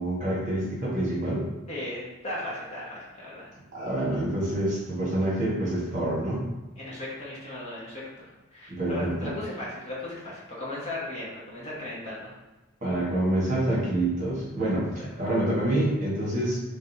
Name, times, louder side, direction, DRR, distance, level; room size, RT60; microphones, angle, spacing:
voice 1, 0.0-1.5 3.7-6.4 8.7-9.1 12.8-14.9 15.2-16.6, right 1 dB, 35° right, -6 dB, 1.4 m, -27 dB
voice 2, 1.7-3.5 6.8-12.4, left 1 dB, 30° left, -6 dB, 1.0 m, -37 dB
3.9 x 3.4 x 2.8 m, 1.1 s
head